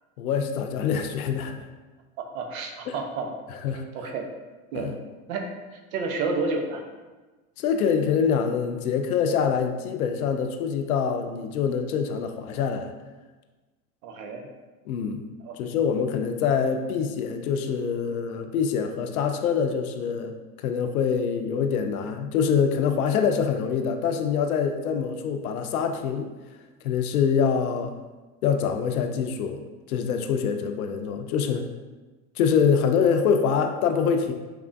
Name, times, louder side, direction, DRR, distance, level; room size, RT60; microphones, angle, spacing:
voice 1, 0.2-1.7 2.9-3.0 3.6-3.8 4.7-4.9 7.6-12.9 14.9-15.2 15.6-26.3 26.8-27.9 28.4-29.6 29.9-31.6 32.4-34.3, left 6 dB, 90° left, 6 dB, 0.5 m, -25 dB
voice 2, 2.2-3.3 3.9-4.3 4.7-4.9 5.3-6.9 14.0-14.5 15.4-15.5, right 3 dB, 75° right, 3 dB, 0.8 m, -30 dB
4.7 x 3.4 x 2.5 m, 1.2 s
hypercardioid pair, 90°, 42 cm